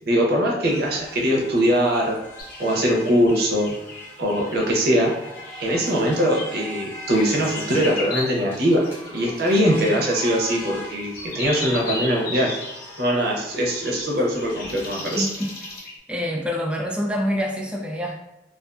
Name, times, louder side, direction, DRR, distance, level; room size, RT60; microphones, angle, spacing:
voice 1, 0.1-2.1 2.6-3.7 4.2-5.1 5.6-8.8 9.1-12.5 13.0-15.3, equal, 60° right, -2 dB, 0.7 m, -21 dB
sound 1, 0.6-15.8, equal, 15° left, 0.7 m, -41 dB
sound 2, 2.4-4.7 5.4-16.0, left 2 dB, 55° left, 0.5 m, -36 dB
voice 2, 15.2-15.5 16.1-18.2, equal, 5° right, 1 dB, 0.3 m, -26 dB
2.5 x 2.4 x 2.3 m, 0.90 s
head